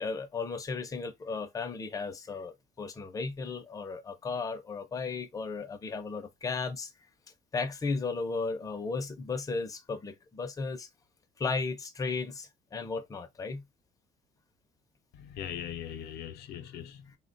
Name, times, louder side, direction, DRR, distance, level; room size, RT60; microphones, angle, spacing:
voice 1, 0.0-6.9 7.5-10.9 11.4-13.6, left 4 dB, 20° left, 0.5 m, -35 dB
voice 2, 15.1-17.2, left 9 dB, 75° left, 0.4 m, -40 dB
3.4 x 2.1 x 2.5 m
cardioid pair, 110°, 17 cm